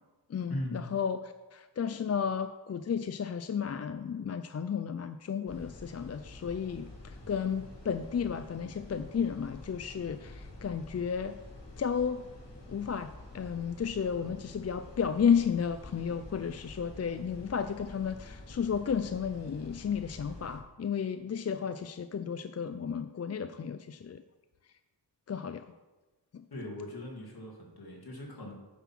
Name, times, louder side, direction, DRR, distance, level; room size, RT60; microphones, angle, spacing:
voice 1, 0.3-11.4 11.8-12.2 12.7-24.2 25.3-25.7 26.3-26.4, left 7 dB, 40° left, 10 dB, 0.4 m, -33 dB
sound 1, 5.5-20.6, left 2 dB, 90° left, 2.4 m, -48 dB
voice 2, 26.5-28.5, left 1 dB, 60° left, -1 dB, 2.5 m, -39 dB
9.4 x 5.7 x 6.0 m, 1.2 s
wide cardioid pair, 100°, 42 cm